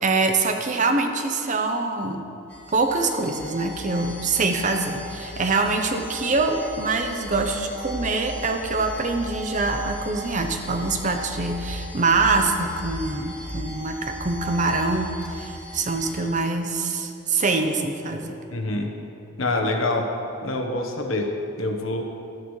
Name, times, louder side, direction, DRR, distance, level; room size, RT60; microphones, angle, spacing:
voice 1, 0.0-2.3 2.7-18.3, right 3 dB, 35° right, 5 dB, 0.7 m, -24 dB
sound 1, 2.5-16.2, equal, 10° left, 1.6 m, -36 dB
voice 2, 18.5-18.9 19.4-20.1 20.4-21.3 21.6-22.0, left 2 dB, 70° left, 2 dB, 1.1 m, -25 dB
13.0 x 10.5 x 3.2 m, 2.7 s
head